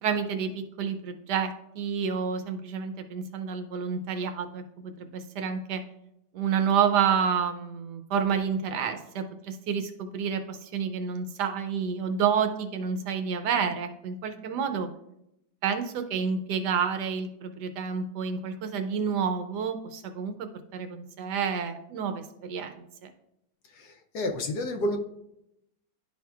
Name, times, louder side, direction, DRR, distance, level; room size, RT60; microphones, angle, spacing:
voice 1, 0.0-5.8 6.3-14.9 15.6-23.1, right 7 dB, 75° right, 7 dB, 1.1 m, -29 dB
voice 2, 24.1-25.0, left 1 dB, 70° left, 4 dB, 1.1 m, -28 dB
11.0 x 4.4 x 2.3 m, 0.81 s
omnidirectional pair, 2.0 m